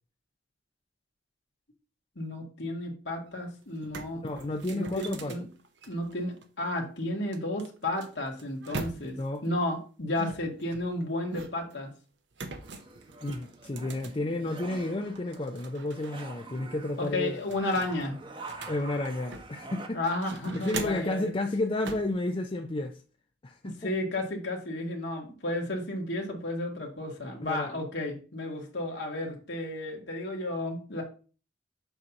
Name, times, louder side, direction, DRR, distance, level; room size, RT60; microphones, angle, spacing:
voice 1, 2.2-4.2 4.7-5.5 5.9-9.2 9.4-11.9 17.0-18.2 19.9-21.3 23.6-31.0, left 1 dB, 65° left, 1.9 m, -33 dB
sound 1, 3.3-3.4 3.7-6.4 7.3-9.4 10.1-11.8 12.3-14.7 15.1-16.2 16.5-16.6 17.0-19.7 20.1-21.2 21.8-22.2, right 3 dB, 65° right, 0.8 m, -42 dB
voice 2, 4.2-5.4 9.1-9.4 13.2-17.4 18.7-20.0 20.5-23.0 23.4-23.9 27.4-27.8, left 2 dB, 30° left, 0.5 m, -32 dB
sound 2, 12.6-19.9, right 3 dB, 30° right, 0.9 m, -46 dB
7.8 x 2.7 x 5.9 m
head